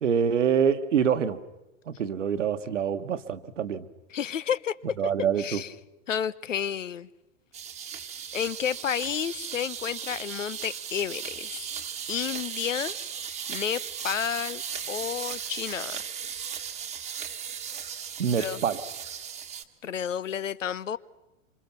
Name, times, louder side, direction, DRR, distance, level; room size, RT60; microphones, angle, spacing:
voice 1, 0.0-1.4 1.9-3.9 5.0-5.6 18.2-18.8, right 7 dB, 70° right, 1.5 m, -25 dB
voice 2, 4.1-4.7 5.0-5.1 5.4-5.7 6.1-7.1 7.9-8.0 8.3-11.6 12.1-13.0 13.5-14.6 14.9-16.1 18.4-18.6 19.8-21.0, left 8 dB, 75° left, 0.9 m, -31 dB
sound 1, 7.5-19.6, right 8 dB, 15° right, 1.4 m, -37 dB
26.5 x 26.0 x 6.0 m
figure-of-eight pair, 100°, 39 cm